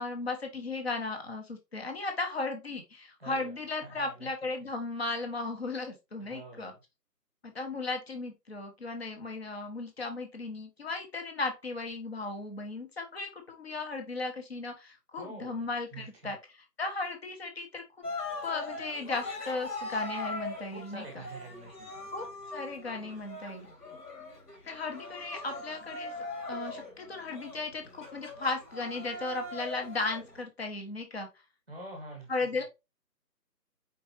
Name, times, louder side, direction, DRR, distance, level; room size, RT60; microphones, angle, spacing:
voice 1, 0.0-6.7 7.4-16.4 16.8-17.8 18.4-21.2 22.1-23.7 24.6-26.1 26.5-31.3 32.3-32.6, left 3 dB, 40° left, 4 dB, 1.0 m, -36 dB
voice 2, 3.2-4.3 6.2-6.8 15.2-16.3 20.7-22.1 31.7-32.6, right 2 dB, 5° left, 1 dB, 1.2 m, -47 dB
Cheering, 18.0-30.4, left 2 dB, 75° left, 2.3 m, -41 dB
4.7 x 3.9 x 2.9 m, 0.24 s
figure-of-eight pair, 165°, 48 cm